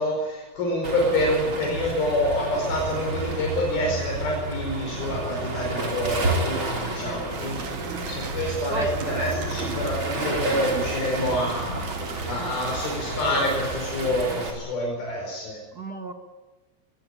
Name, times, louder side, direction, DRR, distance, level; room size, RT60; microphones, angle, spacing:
voice 1, 0.0-7.7 8.1-15.6, left 1 dB, 80° left, -1 dB, 6.8 m, -27 dB
Waves surf, 0.8-14.5, right 2 dB, 35° right, 4.6 m, -30 dB
voice 2, 6.7-8.3 8.7-9.0 12.4-12.6 14.3-14.4 15.7-16.1, right 3 dB, 50° right, 5 dB, 1.1 m, -37 dB
sound 1, 7.3-13.0, right 7 dB, 80° right, 4.0 m, -39 dB
23.0 x 19.5 x 10.0 m, 1.2 s
omnidirectional pair, 4.3 m